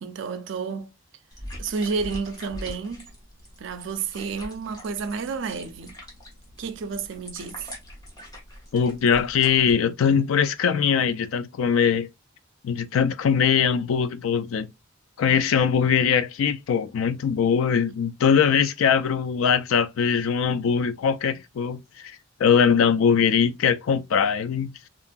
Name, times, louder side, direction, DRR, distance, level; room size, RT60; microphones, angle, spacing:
voice 1, 0.0-0.9 1.6-3.1 3.6-6.0 6.6-7.7, right 5 dB, 60° right, 0.4 m, -31 dB
sound 1, 1.3-9.7, equal, 20° left, 0.8 m, -43 dB
voice 2, 8.7-12.1 12.6-14.7 15.2-21.8 22.4-24.8, left 7 dB, 80° left, 0.3 m, -21 dB
2.9 x 2.5 x 2.2 m
head